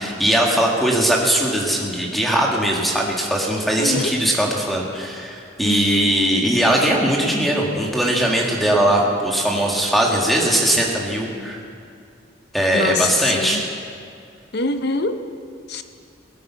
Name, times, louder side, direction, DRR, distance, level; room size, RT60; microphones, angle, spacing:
voice 1, 0.0-11.6 12.5-13.7, right 1 dB, ahead, -1 dB, 1.9 m, -20 dB
voice 2, 3.8-4.1 5.6-6.1 12.7-13.1 13.3-13.6 14.5-15.2 15.7-15.8, left 2 dB, 55° left, 9 dB, 0.8 m, -24 dB
21.0 x 9.3 x 5.8 m, 2.4 s
head